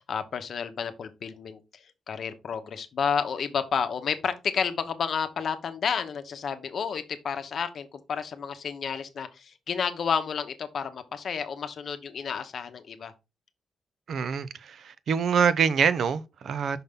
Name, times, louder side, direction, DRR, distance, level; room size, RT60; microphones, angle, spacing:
voice 1, 0.0-1.6 2.1-13.1, left 6 dB, 50° left, 0.9 m, -31 dB
voice 2, 14.1-16.8, right 6 dB, 60° right, 0.6 m, -25 dB
5.8 x 5.4 x 3.6 m
wide cardioid pair, 160°, 0 cm